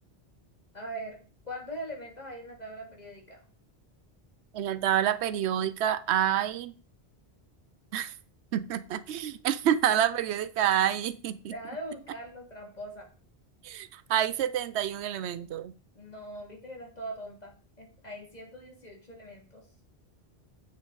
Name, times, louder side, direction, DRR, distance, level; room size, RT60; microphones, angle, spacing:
voice 1, 0.7-1.2 1.4-3.4 11.5-13.1 15.9-19.6, right 1 dB, 40° left, 0 dB, 2.6 m, -41 dB
voice 2, 4.5-6.7 7.9-8.1 8.5-11.5 13.6-15.7, right 10 dB, 85° right, 14 dB, 0.9 m, -28 dB
9.1 x 7.3 x 4.0 m, 0.37 s
omnidirectional pair, 1.1 m